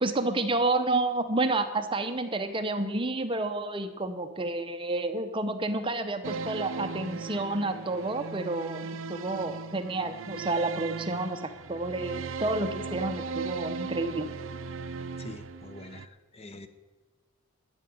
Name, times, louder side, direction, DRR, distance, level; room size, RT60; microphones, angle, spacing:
voice 1, 0.0-11.4 11.7-14.3, right 2 dB, 25° right, 8 dB, 0.8 m, -30 dB
sound 1, 6.2-16.1, right 4 dB, 70° right, 0.6 m, -37 dB
voice 2, 15.2-16.7, left 2 dB, 30° left, 10 dB, 0.8 m, -45 dB
12.5 x 6.9 x 9.1 m, 1.2 s
head